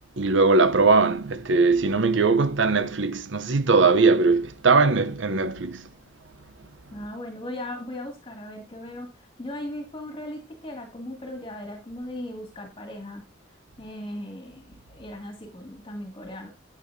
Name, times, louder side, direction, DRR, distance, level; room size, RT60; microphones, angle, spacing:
voice 1, 0.2-5.9, right 4 dB, 70° right, 0.7 m, -20 dB
voice 2, 6.9-13.2 13.8-16.5, left 1 dB, 30° left, 2.1 m, -37 dB
10.0 x 8.6 x 2.6 m
head